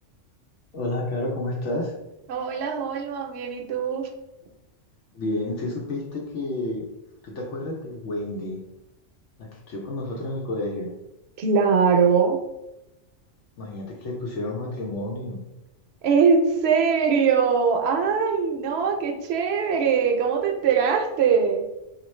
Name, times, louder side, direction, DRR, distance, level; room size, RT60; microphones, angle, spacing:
voice 1, 0.7-1.9 5.1-6.8 7.2-8.6 9.4-10.9 13.6-15.4, left 2 dB, 75° left, -1 dB, 1.0 m, -30 dB
voice 2, 2.3-4.1 11.4-12.4 16.0-21.6, right 6 dB, 65° right, 4 dB, 0.8 m, -21 dB
4.3 x 2.5 x 3.1 m, 0.92 s
omnidirectional pair, 1.3 m